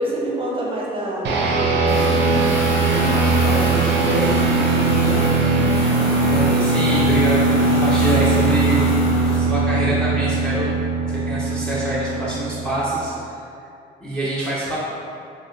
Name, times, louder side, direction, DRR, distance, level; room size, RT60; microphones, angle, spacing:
voice 1, 0.0-2.5 2.8-3.1 3.4-5.4 5.8-6.2, right 1 dB, 25° right, -5 dB, 0.7 m, -28 dB
sound 1, 1.2-12.9, right 3 dB, 60° right, 0.5 m, -19 dB
sound 2, 1.9-9.4, left 2 dB, 75° left, 0.6 m, -28 dB
voice 2, 6.3-10.7 11.1-13.4 14.0-14.8, right 1 dB, 5° left, -10 dB, 0.7 m, -25 dB
3.0 x 2.8 x 2.7 m, 2.5 s
cardioid pair, 90°, 20 cm